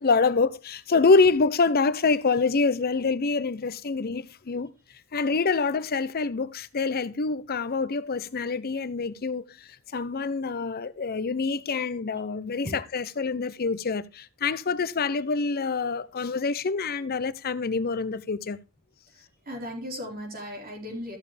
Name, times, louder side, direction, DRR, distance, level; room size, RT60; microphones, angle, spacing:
voice 1, 0.0-4.7 5.1-9.5 9.9-12.7 12.9-18.6, left 4 dB, 45° left, 0.6 m, -26 dB
voice 2, 19.1-21.2, equal, 45° right, 4.5 m, -37 dB
13.5 x 7.0 x 3.3 m
head